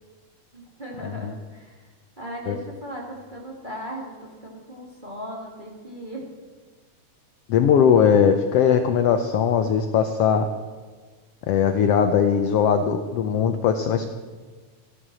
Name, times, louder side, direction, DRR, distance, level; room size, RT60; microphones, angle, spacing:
voice 1, 0.5-1.8 2.2-6.3, equal, 15° right, -2 dB, 2.4 m, -37 dB
voice 2, 7.5-10.5 11.5-14.1, left 7 dB, 80° left, 7 dB, 1.4 m, -20 dB
15.0 x 12.0 x 6.3 m, 1.4 s
omnidirectional pair, 3.6 m